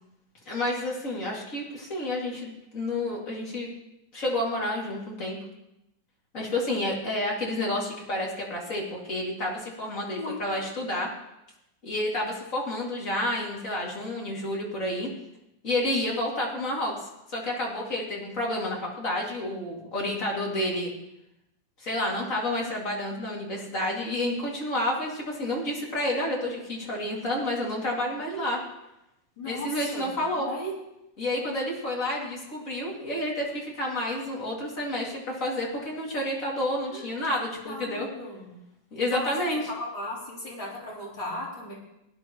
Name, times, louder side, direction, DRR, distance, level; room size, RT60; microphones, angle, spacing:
voice 1, 0.5-3.7 4.1-5.4 6.3-11.1 11.8-15.1 15.6-20.9 21.8-28.6 29.4-30.5 31.2-38.1 38.9-39.6, left 1 dB, 40° left, -3 dB, 3.0 m, -30 dB
voice 2, 10.1-10.7 28.3-28.6 29.4-30.7 36.9-37.1 37.7-38.5 39.1-39.3 39.7-41.7, left 1 dB, 80° left, -6 dB, 4.6 m, -37 dB
18.0 x 10.5 x 3.1 m, 0.88 s
omnidirectional pair, 2.1 m